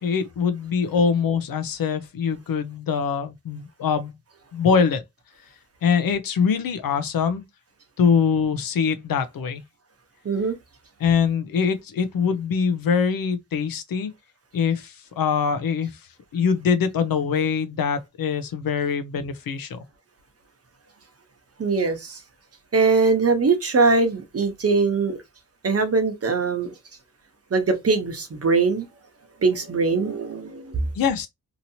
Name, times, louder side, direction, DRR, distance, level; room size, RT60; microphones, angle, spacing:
voice 1, 0.0-4.1 4.5-5.0 5.8-7.4 8.0-9.6 11.0-14.1 14.5-15.9 16.3-19.8 30.9-31.3, left 6 dB, 85° left, 0.6 m, -23 dB
voice 2, 10.2-10.6 21.6-22.2 22.7-25.2 25.6-26.7 27.5-28.9 29.4-30.8, right 4 dB, 45° right, 0.9 m, -21 dB
2.9 x 2.8 x 2.7 m
wide cardioid pair, 95°, 34 cm